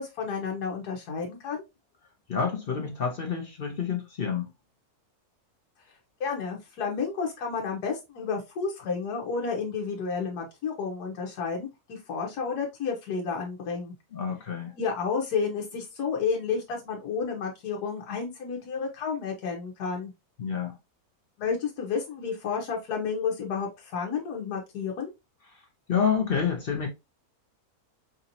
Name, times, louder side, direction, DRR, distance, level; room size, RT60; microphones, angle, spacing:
voice 1, 0.0-1.6 6.2-13.9 14.8-20.1 21.4-25.1, left 5 dB, 85° left, 1.4 m, -31 dB
voice 2, 2.3-4.5 14.1-14.7 20.4-20.8 25.5-26.9, left 6 dB, 50° left, 0.7 m, -29 dB
5.0 x 2.6 x 2.8 m
omnidirectional pair, 1.6 m